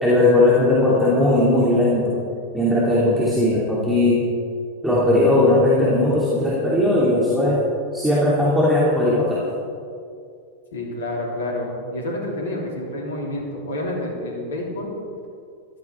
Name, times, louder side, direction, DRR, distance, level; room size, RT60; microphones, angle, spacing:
voice 1, 0.0-2.2 2.5-4.2 4.8-7.6 7.9-9.4, left 1 dB, 5° right, -8 dB, 2.9 m, -18 dB
voice 2, 10.7-15.0, left 1 dB, 65° left, -1 dB, 3.2 m, -28 dB
15.0 x 13.0 x 4.6 m, 2.4 s
figure-of-eight pair, 90°, 0 cm